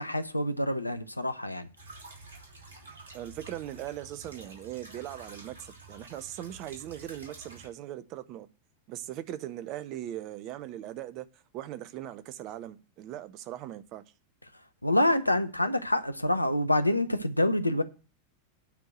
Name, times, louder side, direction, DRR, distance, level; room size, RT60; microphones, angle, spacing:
voice 1, 0.0-1.7 14.8-17.8, left 1 dB, 85° left, 0.7 m, -26 dB
sound 1, 1.8-7.7, right 3 dB, 65° right, 3.0 m, -49 dB
voice 2, 3.1-8.5 8.9-11.3 11.5-14.0, right 12 dB, 40° right, 0.8 m, -39 dB
9.1 x 4.7 x 7.5 m
figure-of-eight pair, 90°, 0 cm